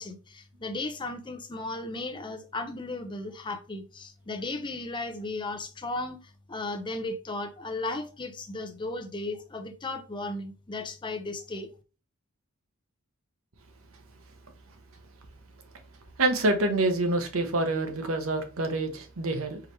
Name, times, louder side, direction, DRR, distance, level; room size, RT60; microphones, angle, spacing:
voice 1, 0.0-11.7, left 2 dB, 20° left, 0.5 m, -35 dB
voice 2, 16.2-19.6, right 2 dB, 70° right, 0.9 m, -26 dB
4.7 x 3.2 x 3.1 m
head